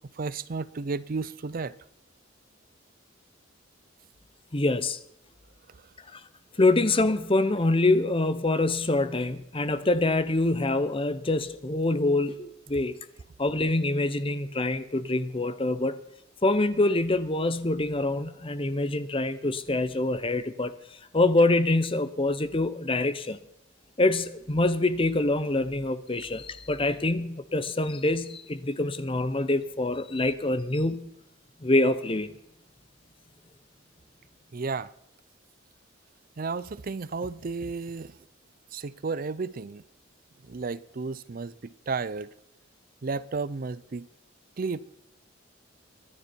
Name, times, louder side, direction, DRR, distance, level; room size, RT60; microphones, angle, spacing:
voice 1, 0.2-1.7 34.5-34.9 36.4-38.1 38.7-39.8 40.5-42.3 43.0-44.1 44.6-45.0, right 4 dB, 45° right, 0.5 m, -33 dB
voice 2, 4.5-5.0 6.1-6.2 6.6-13.0 13.4-16.0 16.4-20.8 21.1-23.4 24.0-31.1 31.6-32.3, left 2 dB, 25° left, 0.9 m, -25 dB
24.0 x 9.8 x 4.5 m
head